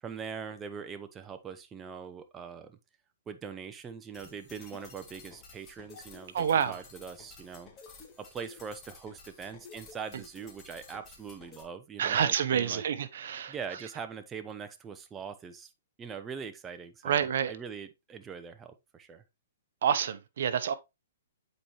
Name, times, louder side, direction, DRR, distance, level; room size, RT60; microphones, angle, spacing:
voice 1, 0.0-2.8 3.3-7.7 8.2-12.8 13.5-15.7 16.0-19.2, right 6 dB, 15° right, 0.7 m, -42 dB
sound 1, 4.1-11.6, left 5 dB, 25° left, 1.7 m, -52 dB
voice 2, 6.3-6.7 12.0-13.5 17.0-17.5 19.8-20.7, right 8 dB, 65° right, 0.8 m, -28 dB
7.9 x 4.4 x 3.1 m
hypercardioid pair, 145°, 0 cm